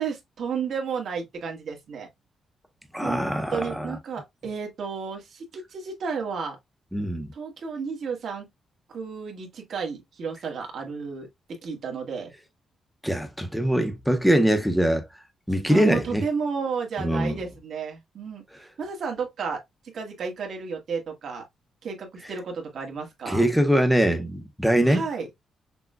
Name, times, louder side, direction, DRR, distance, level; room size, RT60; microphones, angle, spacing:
voice 1, 0.0-2.1 3.0-3.2 3.5-6.6 7.3-8.5 8.9-12.3 15.7-18.4 18.8-21.4 21.8-23.5 24.8-25.3, right 5 dB, 55° right, 1.3 m, -32 dB
voice 2, 2.9-4.0 6.9-7.3 13.0-15.0 15.5-16.2 17.0-17.3 23.3-25.0, equal, ahead, 0.7 m, -22 dB
5.9 x 2.2 x 2.3 m
wide cardioid pair, 170°, 0 cm